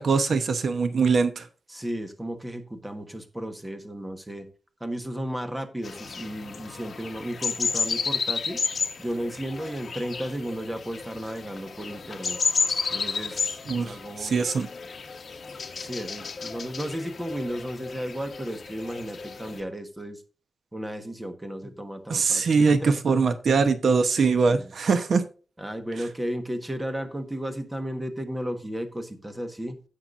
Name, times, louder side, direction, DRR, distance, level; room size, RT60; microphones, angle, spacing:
voice 1, 0.0-1.5 13.7-14.7 22.1-25.2, right 5 dB, 65° right, 9 dB, 0.9 m, -22 dB
voice 2, 1.7-4.5 4.8-8.6 9.0-12.4 12.9-14.4 15.8-20.2 20.7-23.0 24.5-24.7 25.6-29.8, equal, 10° right, 7 dB, 1.3 m, -34 dB
sound 1, 5.8-19.6, left 5 dB, 55° left, 1.2 m, -32 dB
16.5 x 5.9 x 2.5 m, 0.37 s
wide cardioid pair, 160°, 0 cm